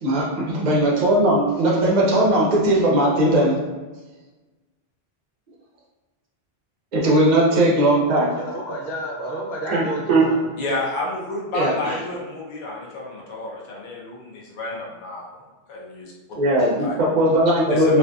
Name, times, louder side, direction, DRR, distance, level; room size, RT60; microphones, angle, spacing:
voice 1, 0.0-3.6 6.9-8.4 9.7-10.2 11.5-11.9 16.4-18.0, right 1 dB, 50° right, -4 dB, 0.7 m, -18 dB
voice 2, 8.4-10.4, right 1 dB, 75° left, -4 dB, 1.0 m, -30 dB
voice 3, 10.6-15.4 15.7-16.1 16.6-17.0 17.7-18.0, left 2 dB, 55° left, -4 dB, 0.7 m, -30 dB
2.5 x 2.5 x 2.3 m, 1.2 s
omnidirectional pair, 1.1 m